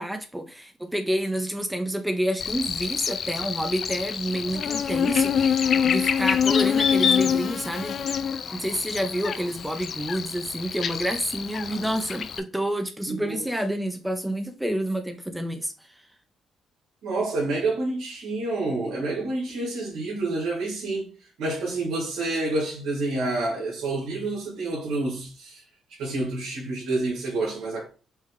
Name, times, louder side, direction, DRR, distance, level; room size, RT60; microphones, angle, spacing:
voice 1, 0.0-8.0 8.5-16.0, right 1 dB, 5° right, 0.5 m, -29 dB
Buzz, 2.4-12.4, left 7 dB, 55° left, 0.4 m, -26 dB
voice 2, 13.1-13.4 17.0-25.6 25.9-27.9, right 2 dB, 90° right, 1.7 m, -28 dB
5.4 x 2.3 x 3.3 m
cardioid pair, 90°, 0 cm